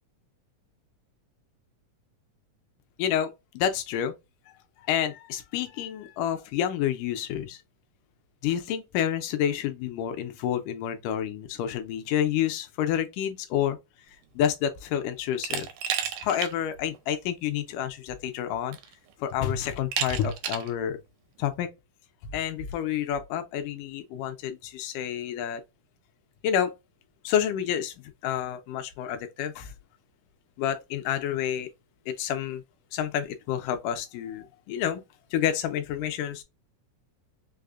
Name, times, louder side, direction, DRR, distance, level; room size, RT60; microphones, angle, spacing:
voice 1, 3.0-4.1 4.9-7.6 8.4-13.8 14.4-15.7 16.2-18.8 19.2-21.0 21.4-21.7 22.3-25.6 26.4-26.7 27.2-27.9 28.2-29.7 30.6-31.7 32.1-32.6 32.9-35.0 35.3-36.4, left 10 dB, 80° left, 2.2 m, -29 dB
Glass, 15.4-16.5 16.9-17.0 18.2-18.3 18.7-19.1 19.9-20.7, right 8 dB, 80° right, 2.2 m, -31 dB
5.6 x 2.1 x 2.4 m
omnidirectional pair, 3.7 m